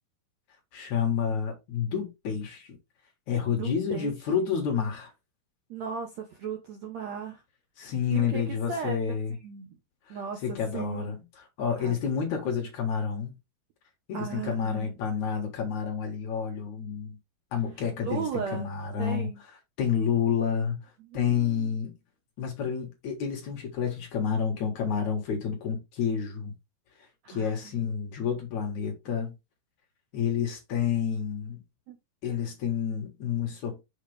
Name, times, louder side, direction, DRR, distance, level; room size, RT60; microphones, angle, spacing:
voice 1, 0.7-2.7 3.3-5.1 7.8-9.4 10.1-10.2 10.4-11.2 11.6-13.3 14.1-17.2 17.5-18.3 18.5-19.3 19.8-20.8 21.1-21.9 22.4-26.5 27.3-29.3 30.1-31.6 32.2-33.8, left 7 dB, 55° left, 2.5 m, -29 dB
voice 2, 3.4-4.1 5.7-7.4 8.1-9.8 10.1-11.2 11.8-12.0 14.1-14.9 18.0-19.4 21.0-21.8 27.2-27.8 31.9-32.0, right 7 dB, 70° right, 1.7 m, -37 dB
7.0 x 5.1 x 3.3 m
omnidirectional pair, 4.5 m